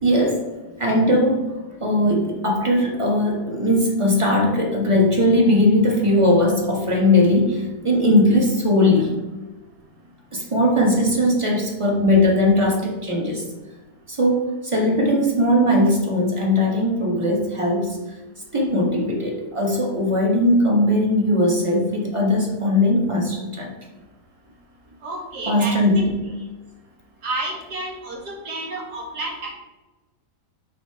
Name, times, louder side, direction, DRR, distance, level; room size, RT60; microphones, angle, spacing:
voice 1, 0.0-0.4 0.8-1.5 1.8-9.1 10.3-13.4 14.1-18.0 18.5-23.7 25.5-26.1, left 1 dB, 20° right, 0 dB, 1.3 m, -19 dB
voice 2, 25.0-26.3 27.2-29.5, right 2 dB, 70° right, -2 dB, 2.2 m, -31 dB
5.7 x 4.4 x 5.7 m, 1.1 s
omnidirectional pair, 1.7 m